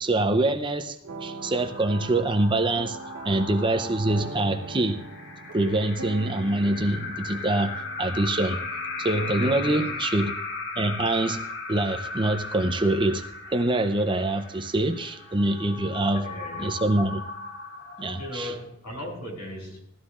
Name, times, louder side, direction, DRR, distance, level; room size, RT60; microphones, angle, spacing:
voice 1, 0.0-3.0 3.2-5.0 5.5-8.6 9.0-10.3 10.8-13.2 13.5-16.3 16.6-17.2 18.0-18.5, right 2 dB, 20° right, 8 dB, 0.6 m, -25 dB
sound 1, 1.0-10.1, right 3 dB, 85° right, 1.0 m, -42 dB
sound 2, 1.3-18.7, left 3 dB, 50° left, 1.3 m, -37 dB
voice 2, 9.4-9.9 16.1-16.7 18.1-19.8, left 1 dB, 85° left, -1 dB, 5.9 m, -37 dB
17.5 x 13.0 x 2.5 m, 0.77 s
head